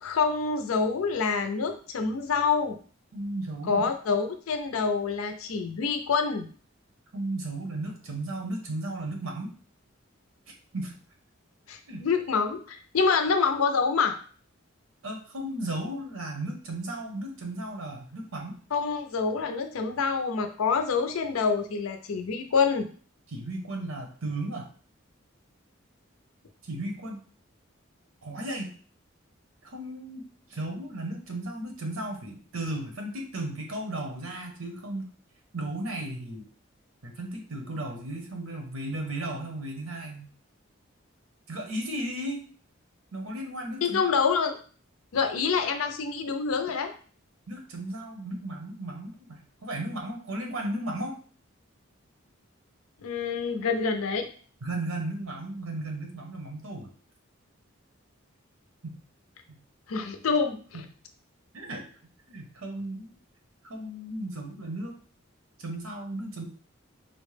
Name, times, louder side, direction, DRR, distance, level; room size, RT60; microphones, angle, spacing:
voice 1, 0.0-2.8 3.6-6.5 11.7-14.1 18.7-22.9 43.8-44.6 45.1-46.9 53.0-54.3 59.9-60.8, left 5 dB, 85° left, 7 dB, 0.5 m, -26 dB
voice 2, 3.1-3.8 7.1-9.5 10.5-11.0 11.9-12.1 15.0-18.6 23.3-24.7 26.6-27.2 28.2-28.7 29.6-30.2 30.5-35.1 35.5-36.5 37.0-40.2 41.5-42.4 43.1-44.0 47.5-51.2 54.6-56.9 58.8-59.0 59.5-59.6 60.7-60.8 61.5-61.8 62.3-63.2 63.6-64.9 65.6-66.4, right 1 dB, 85° right, 2 dB, 0.9 m, -35 dB
4.2 x 2.1 x 3.2 m, 0.42 s
head